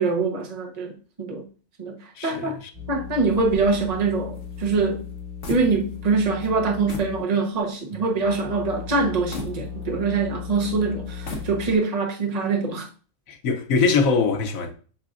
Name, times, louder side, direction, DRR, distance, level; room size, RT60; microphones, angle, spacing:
voice 1, 0.0-1.4 1.8-2.0 2.2-2.5 2.9-5.0 5.5-12.9, right 4 dB, 30° right, 1.1 m, -24 dB
voice 2, 2.2-2.5 13.3-14.7, left 4 dB, 80° left, 1.3 m, -22 dB
sound 1, 2.7-7.6 8.2-11.8, left 6 dB, 50° right, 3.5 m, -37 dB
sound 2, 3.3-6.1 6.4-6.6 6.9-7.2 7.7-7.8 9.3-10.3 11.1-11.9, left 2 dB, 60° left, 1.5 m, -38 dB
8.7 x 5.6 x 2.5 m
omnidirectional pair, 1.4 m